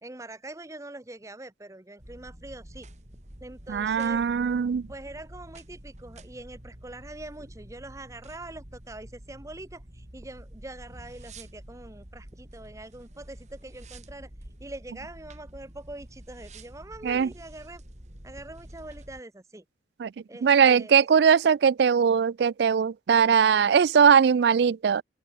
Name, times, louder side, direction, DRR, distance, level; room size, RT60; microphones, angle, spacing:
voice 1, 0.0-2.9 3.4-4.2 4.9-14.3 14.6-17.8 18.2-19.6 20.3-21.1, right 2 dB, 15° right, 0.8 m, -43 dB
sound 1, 2.0-19.2, right 1 dB, 40° right, 3.2 m, -48 dB
voice 2, 3.7-4.9 17.0-17.3 20.0-20.1 20.4-25.0, right 7 dB, 65° right, 0.3 m, -20 dB
open air
head